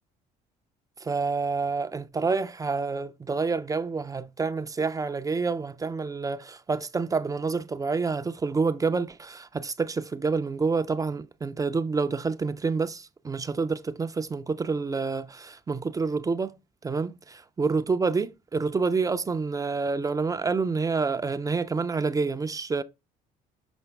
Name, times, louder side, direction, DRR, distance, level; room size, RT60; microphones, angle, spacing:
voice 1, 1.0-16.5 16.8-17.1 17.6-22.8, right 4 dB, 20° right, 0.4 m, -28 dB
7.0 x 4.9 x 3.3 m
cardioid pair, 110°, 17 cm